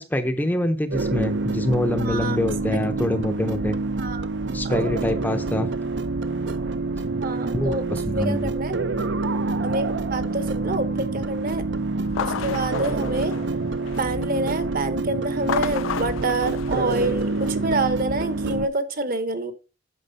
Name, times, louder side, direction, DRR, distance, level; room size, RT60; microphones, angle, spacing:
voice 1, 0.0-3.8 4.5-5.7 7.5-8.5, left 1 dB, 10° left, 8 dB, 0.6 m, -25 dB
sound 1, 0.9-18.7, right 3 dB, 65° right, 0.6 m, -27 dB
voice 2, 2.0-2.4 4.0-4.3 7.2-7.8 8.1-8.8 9.6-11.6 12.2-13.3 14.0-19.5, right 2 dB, 45° right, 11 dB, 1.1 m, -27 dB
sound 2, 12.0-14.3 15.3-17.8, left 8 dB, 80° left, 0.4 m, -33 dB
8.9 x 6.1 x 4.0 m, 0.31 s
head